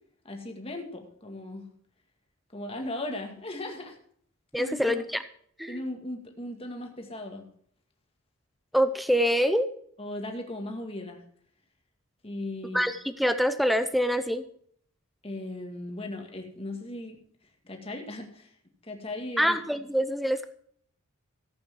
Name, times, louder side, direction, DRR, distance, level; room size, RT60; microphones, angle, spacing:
voice 1, 0.2-1.7 2.5-4.0 4.6-5.1 5.7-7.4 10.0-11.2 12.2-12.9 15.2-17.2 17.6-18.5 18.8-19.6, left 1 dB, 25° left, 3 dB, 1.9 m, -37 dB
voice 2, 4.5-5.2 5.6-5.8 8.7-9.7 12.7-14.4 19.4-20.5, equal, ahead, 11 dB, 0.6 m, -25 dB
14.5 x 8.5 x 4.5 m, 0.63 s
head